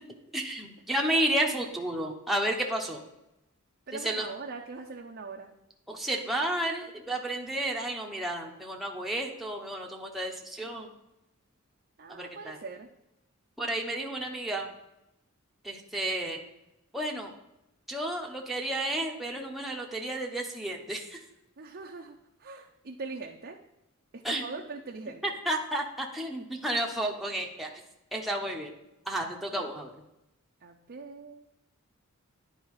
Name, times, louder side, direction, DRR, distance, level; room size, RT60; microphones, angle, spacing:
voice 1, 0.3-3.0 4.0-4.3 5.9-10.9 12.1-12.6 13.6-14.7 15.6-16.4 16.9-17.3 17.9-21.2 24.2-24.4 25.5-27.7 28.1-28.7 29.1-29.9, right 1 dB, ahead, -1 dB, 0.9 m, -31 dB
voice 2, 3.9-5.5 12.0-12.9 21.6-23.6 24.1-25.4 30.6-31.5, right 4 dB, 50° right, 1 dB, 0.6 m, -42 dB
10.0 x 4.7 x 4.7 m, 0.90 s
head